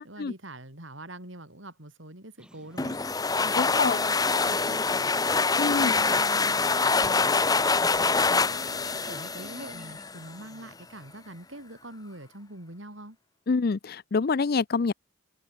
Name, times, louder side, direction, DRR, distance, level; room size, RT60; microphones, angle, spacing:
voice 1, 0.0-3.0 3.4-5.1 5.5-13.2, right 1 dB, 65° right, 6.5 m, -44 dB
sound 1, 2.4-10.1, right 1 dB, 5° right, 4.6 m, -53 dB
sound 2, 2.8-10.3, left 4 dB, 20° left, 0.8 m, -25 dB
voice 2, 3.6-4.0 5.6-5.9 13.5-14.9, left 4 dB, 45° left, 0.4 m, -26 dB
head